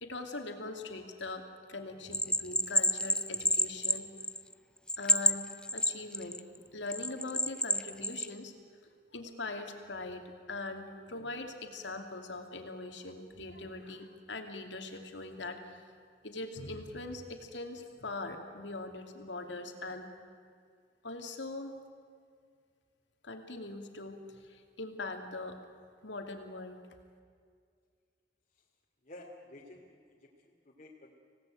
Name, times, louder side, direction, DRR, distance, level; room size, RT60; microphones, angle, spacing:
voice 1, 0.0-4.1 5.0-6.4 6.7-8.5 9.1-15.8 16.2-20.1 21.0-21.7 23.2-25.6 26.0-26.8, left 2 dB, 80° left, 5 dB, 2.6 m, -41 dB
Bell, 2.1-4.5 4.9-6.4 6.9-8.3, left 1 dB, 5° left, 0.6 m, -29 dB
voice 2, 29.0-31.2, left 1 dB, 45° left, -3 dB, 2.7 m, -52 dB
26.0 x 17.5 x 9.1 m, 2.1 s
head